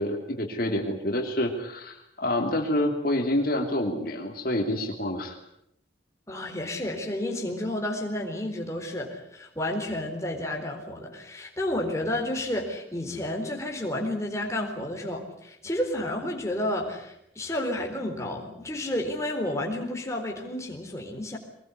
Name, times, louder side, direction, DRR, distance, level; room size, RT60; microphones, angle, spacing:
voice 1, 0.0-5.4, left 1 dB, 50° left, 2 dB, 3.1 m, -27 dB
voice 2, 6.3-21.4, left 1 dB, 15° left, 1 dB, 4.1 m, -31 dB
24.0 x 20.5 x 9.6 m, 0.77 s
head